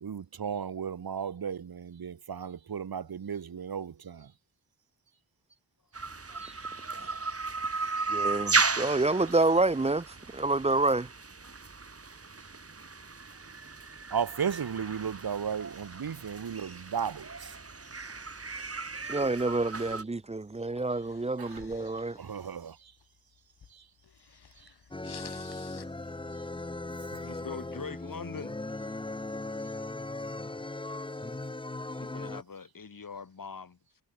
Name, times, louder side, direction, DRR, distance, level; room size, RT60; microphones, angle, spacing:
voice 1, 0.0-4.3 14.1-17.6 21.4-21.6 22.2-22.9 23.7-23.8 24.6-24.7 25.4-25.6, right 7 dB, 65° right, 1.7 m, -35 dB
sound 1, 5.9-20.0, right 4 dB, 35° right, 3.3 m, -35 dB
voice 2, 8.1-11.1 19.1-22.2, right 2 dB, 15° right, 0.6 m, -28 dB
sound 2, 20.1-26.4, left 7 dB, 75° left, 3.6 m, -53 dB
sound 3, 24.9-32.4, left 2 dB, 15° left, 0.9 m, -38 dB
voice 3, 27.1-28.6 31.2-31.3 32.0-34.0, left 5 dB, 55° left, 5.6 m, -43 dB
wide cardioid pair, 95°, 39 cm